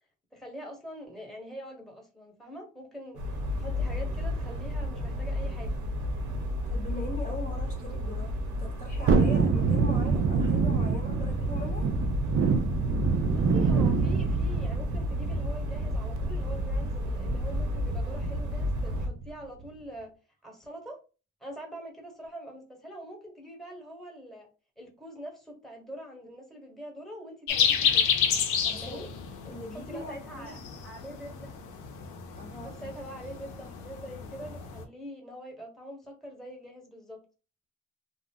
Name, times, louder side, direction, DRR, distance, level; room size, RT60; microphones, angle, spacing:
voice 1, 0.3-3.2 3.6-5.8 13.3-20.1 20.4-21.0 21.4-24.5 24.8-28.1 28.6-29.1 29.7-31.6 32.6-37.2, equal, ahead, 1.1 m, -44 dB
sound 1, 3.1-19.1, left 1 dB, 75° right, 0.8 m, -32 dB
voice 2, 6.7-8.3 8.6-11.9 28.6-29.1 29.4-30.8 32.4-32.8, equal, 25° left, 0.8 m, -41 dB
Thunderstorm, 9.1-19.3 19.6-19.7, right 5 dB, 45° right, 0.4 m, -27 dB
sound 2, 27.5-34.8, left 7 dB, 85° left, 0.6 m, -30 dB
2.4 x 2.0 x 3.5 m
cardioid pair, 90°, 30 cm